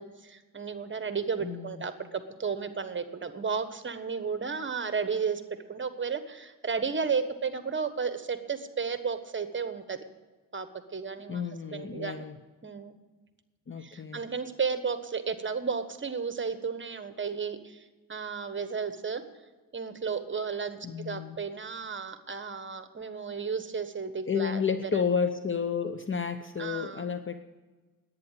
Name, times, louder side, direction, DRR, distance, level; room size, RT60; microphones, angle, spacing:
voice 1, 0.0-5.4 5.7-10.0 10.5-11.4 11.7-12.2 12.6-13.0 13.8-19.2 19.7-25.0 26.6-27.1, right 5 dB, 35° right, 10 dB, 1.3 m, -33 dB
voice 2, 1.4-1.8 11.3-12.3 13.7-14.2 20.8-21.4 24.3-27.4, left 6 dB, 35° left, 10 dB, 0.8 m, -31 dB
10.5 x 9.1 x 8.7 m, 1.3 s
cardioid pair, 75°, 35 cm